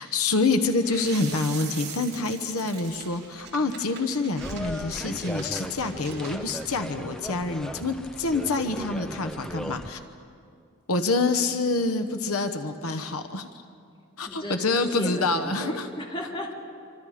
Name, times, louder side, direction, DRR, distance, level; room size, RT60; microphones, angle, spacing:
voice 1, 0.0-10.0 10.9-13.5 14.2-15.9, left 3 dB, 90° left, 8 dB, 1.1 m, -27 dB
sound 1, 0.8-6.6, right 6 dB, 45° right, 3.8 m, -42 dB
sound 2, 4.4-9.9, equal, 5° left, 0.6 m, -37 dB
voice 2, 14.3-16.5, left 1 dB, 25° left, -1 dB, 2.5 m, -35 dB
27.5 x 25.0 x 5.0 m, 2.4 s
head